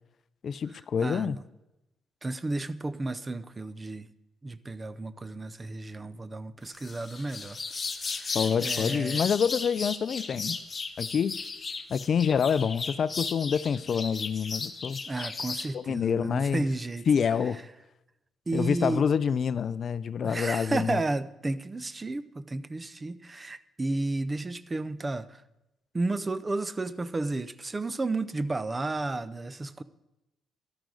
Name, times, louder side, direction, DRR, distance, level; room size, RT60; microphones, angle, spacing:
voice 1, 0.4-1.4 8.3-10.6 11.0-11.3 11.9-15.0 15.7-16.6 17.1-17.6 18.5-21.0, left 7 dB, 55° left, 0.4 m, -27 dB
voice 2, 1.0-1.4 2.2-4.1 4.4-7.6 8.0-9.3 15.1-17.1 18.5-19.1 20.2-25.4 25.9-29.8, right 2 dB, 25° right, 0.6 m, -32 dB
sound 1, 6.8-15.7, left 4 dB, 30° left, 1.0 m, -35 dB
14.0 x 11.5 x 3.9 m
cardioid pair, 90°, 0 cm